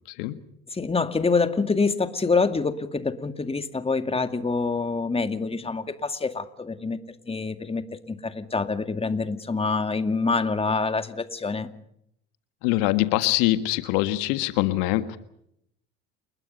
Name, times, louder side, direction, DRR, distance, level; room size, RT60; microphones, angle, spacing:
voice 1, 0.7-7.0 7.3-11.7, left 4 dB, 15° left, 9 dB, 2.2 m, -26 dB
voice 2, 12.6-15.2, left 16 dB, 75° left, 11 dB, 1.7 m, -23 dB
30.0 x 21.0 x 5.5 m, 0.74 s
hypercardioid pair, 75°, 33 cm